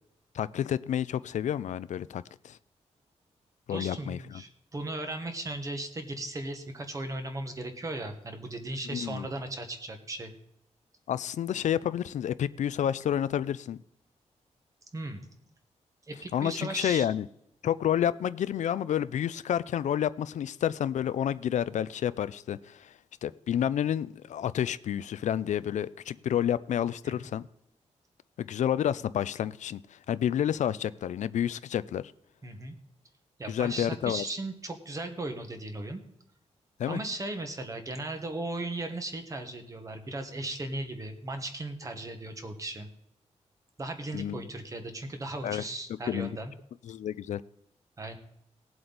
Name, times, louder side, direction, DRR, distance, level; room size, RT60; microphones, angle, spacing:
voice 1, 0.3-2.6 3.7-4.4 8.9-9.3 11.1-13.8 16.3-17.3 17.6-22.9 23.2-27.5 28.4-32.1 33.5-34.2 36.8-37.0 44.1-44.4 45.4-45.6 46.1-46.4 46.8-47.4, left 10 dB, 85° left, 16 dB, 0.4 m, -30 dB
voice 2, 3.7-10.3 14.9-15.2 16.1-17.1 27.0-27.1 32.4-32.7 33.4-36.0 36.9-42.9 43.8-46.5 48.0-48.2, right 2 dB, 25° right, 6 dB, 1.4 m, -37 dB
18.5 x 7.8 x 4.0 m, 0.75 s
wide cardioid pair, 175°, 12 cm